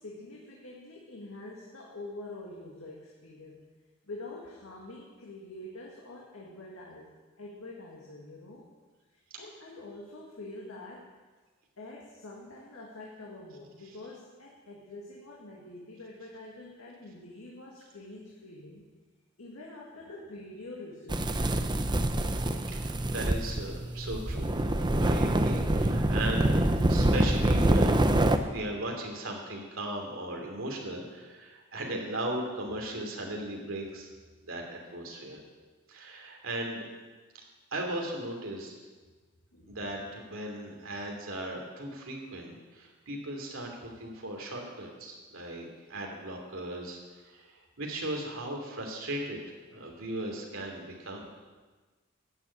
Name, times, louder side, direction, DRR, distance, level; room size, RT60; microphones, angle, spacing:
voice 1, 0.0-3.6 4.1-8.7 9.3-11.1 11.8-18.9 19.4-21.4 39.5-39.8, left 2 dB, 80° left, -3 dB, 2.1 m, -46 dB
sound 1, 21.1-28.4, right 1 dB, 20° right, 0.7 m, -26 dB
voice 2, 22.7-24.5 25.0-34.1 34.4-35.4 35.9-36.9 37.7-38.7 39.7-49.4 49.7-51.3, right 1 dB, 70° right, 0 dB, 2.9 m, -37 dB
12.0 x 7.3 x 8.7 m, 1.3 s
head